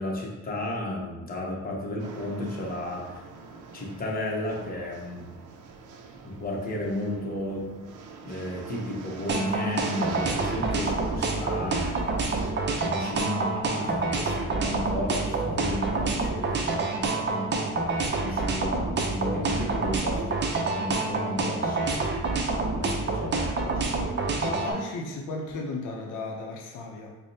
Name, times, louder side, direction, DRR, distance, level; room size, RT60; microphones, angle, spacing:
voice 1, 0.0-3.2 3.7-5.3 6.2-7.7 8.2-12.3 12.8-17.5 18.1-24.0, left 1 dB, 30° left, -2 dB, 0.9 m, -33 dB
sound 1, 2.0-12.5, right 5 dB, 85° right, 0.5 m, -42 dB
sound 2, 9.3-24.7, right 3 dB, 35° right, 0.5 m, -27 dB
voice 2, 24.4-27.2, left 3 dB, 80° left, 0 dB, 0.6 m, -35 dB
4.9 x 2.1 x 2.7 m, 1.1 s
cardioid pair, 90°, 30 cm